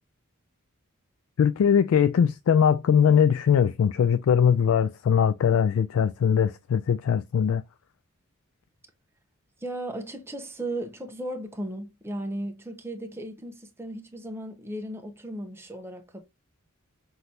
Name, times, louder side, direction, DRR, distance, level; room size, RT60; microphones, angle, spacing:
voice 1, 1.4-7.6, left 7 dB, 75° left, 0.3 m, -21 dB
voice 2, 9.6-16.2, right 1 dB, 10° right, 0.8 m, -36 dB
5.9 x 2.7 x 3.2 m
head